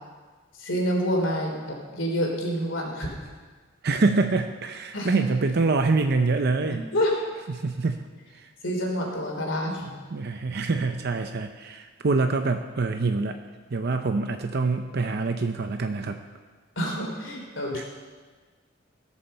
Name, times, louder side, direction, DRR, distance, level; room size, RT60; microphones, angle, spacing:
voice 1, 0.6-3.1 4.9-5.2 6.7-7.1 8.6-9.9 16.7-17.8, equal, 75° left, 0 dB, 3.4 m, -28 dB
voice 2, 3.8-6.8 7.5-8.0 8.3-8.5 10.1-13.4 13.7-16.2 17.7-17.8, right 3 dB, 55° right, 6 dB, 0.6 m, -25 dB
17.0 x 7.3 x 6.7 m, 1.4 s
head